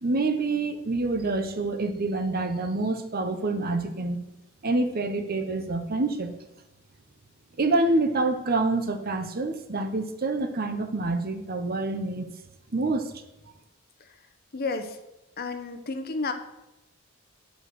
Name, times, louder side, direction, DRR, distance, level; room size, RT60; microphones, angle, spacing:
voice 1, 0.0-4.2 4.6-6.3 7.6-12.3 12.7-13.1, right 2 dB, 45° right, 7 dB, 0.9 m, -27 dB
voice 2, 14.5-15.0 15.4-16.3, left 3 dB, 45° left, 7 dB, 0.9 m, -31 dB
9.1 x 5.3 x 6.2 m, 0.96 s
head